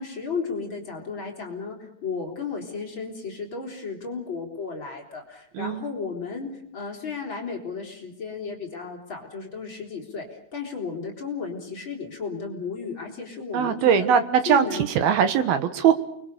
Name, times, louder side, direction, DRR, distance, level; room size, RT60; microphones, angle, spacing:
voice 1, 0.0-14.1 14.5-14.9, left 5 dB, 25° left, 1 dB, 3.7 m, -34 dB
voice 2, 13.5-15.9, right 8 dB, 70° right, 10 dB, 2.6 m, -21 dB
29.5 x 23.0 x 6.8 m, 0.71 s
omnidirectional pair, 5.8 m